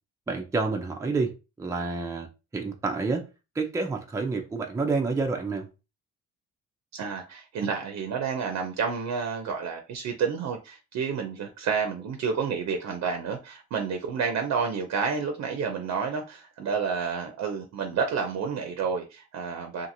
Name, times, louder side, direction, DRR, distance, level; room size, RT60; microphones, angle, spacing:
voice 1, 0.3-2.3 2.5-3.3 3.6-5.7, right 3 dB, 10° right, 0.4 m, -28 dB
voice 2, 6.9-19.9, right 6 dB, 60° right, 0.6 m, -30 dB
2.8 x 2.5 x 2.6 m
cardioid pair, 90°, 30 cm